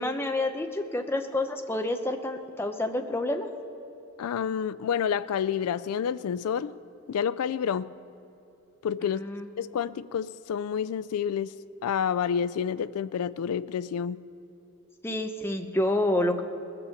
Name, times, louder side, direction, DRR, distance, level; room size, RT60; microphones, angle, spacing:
voice 1, 0.0-3.5 9.0-9.5 15.0-16.4, left 1 dB, 10° left, 5 dB, 0.6 m, -28 dB
voice 2, 4.2-6.7 7.1-7.9 8.8-9.2 9.6-11.6 11.8-14.2, left 8 dB, 85° left, 16 dB, 0.3 m, -29 dB
20.0 x 6.8 x 7.1 m, 2.9 s
head